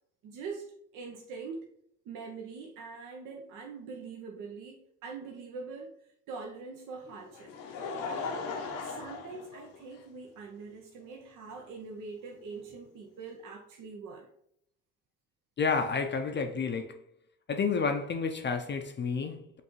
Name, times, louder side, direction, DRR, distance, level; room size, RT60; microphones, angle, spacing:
voice 1, 0.2-0.7 0.9-1.6 2.1-5.9 6.3-7.5 8.1-8.5 8.8-14.3, right 4 dB, 75° right, 0.6 m, -43 dB
Laughter, 7.1-10.3 11.1-11.2 12.7-12.8, left 4 dB, 75° left, 0.7 m, -38 dB
voice 2, 15.6-17.0 17.5-19.6, left 5 dB, 35° left, 0.4 m, -30 dB
5.6 x 2.6 x 3.0 m
supercardioid pair, 65°, 32 cm